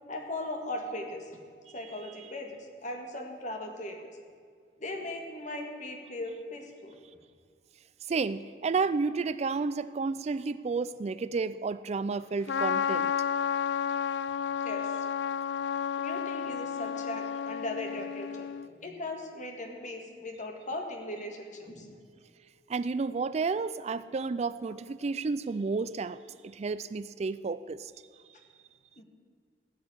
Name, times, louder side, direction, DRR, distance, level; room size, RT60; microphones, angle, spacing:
voice 1, 0.1-1.4 1.7-4.2 4.8-7.0 14.6-14.9 16.0-18.5 18.8-21.9 29.0-29.1, left 1 dB, 45° left, 3 dB, 2.0 m, -38 dB
voice 2, 8.1-13.1 22.7-26.2 26.4-27.9, right 4 dB, 40° right, 15 dB, 0.4 m, -31 dB
Trumpet, 12.5-18.7, left 7 dB, 75° left, 0.4 m, -31 dB
16.5 x 6.4 x 9.7 m, 2.1 s
head